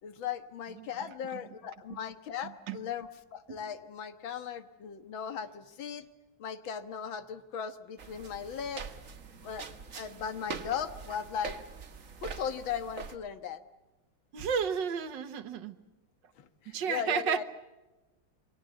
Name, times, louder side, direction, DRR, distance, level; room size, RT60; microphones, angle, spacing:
voice 1, 0.0-6.1 6.4-8.9 9.4-9.7 9.9-11.6 12.2-13.6 16.4-17.4, left 7 dB, 80° left, 10 dB, 2.1 m, -37 dB
sound 1, 8.0-13.2, right 5 dB, 45° right, 1.7 m, -44 dB
voice 2, 14.3-15.8 16.7-17.4, right 7 dB, 65° right, 12 dB, 1.8 m, -32 dB
28.5 x 23.5 x 7.0 m, 1.1 s
omnidirectional pair, 2.1 m